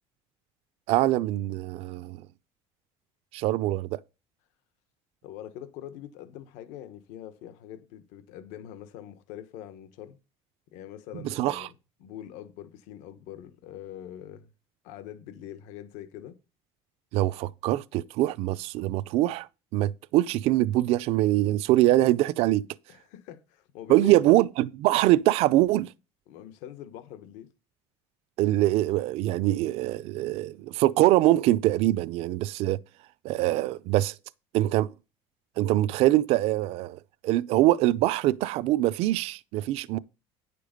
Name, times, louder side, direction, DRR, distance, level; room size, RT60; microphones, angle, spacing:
voice 1, 0.9-2.2 3.3-4.0 11.4-11.7 17.1-22.7 23.9-25.9 28.4-32.8 33.2-34.1 34.5-34.9 35.6-40.0, right 16 dB, 55° right, 0.5 m, -23 dB
voice 2, 5.2-10.2 10.7-11.7 12.0-14.5 14.8-16.4 22.9-24.2 26.3-27.5, left 11 dB, 80° left, 1.3 m, -43 dB
9.9 x 6.7 x 5.1 m
cardioid pair, 180°, 12 cm